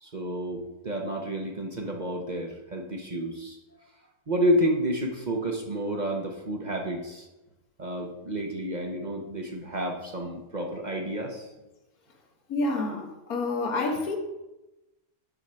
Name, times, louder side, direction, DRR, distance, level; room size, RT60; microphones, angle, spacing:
voice 1, 0.0-3.6 4.3-7.3 7.8-11.5, equal, 35° right, 2 dB, 0.9 m, -30 dB
voice 2, 12.5-14.2, left 2 dB, 85° left, 3 dB, 1.7 m, -28 dB
6.5 x 6.2 x 5.6 m, 0.99 s
omnidirectional pair, 1.5 m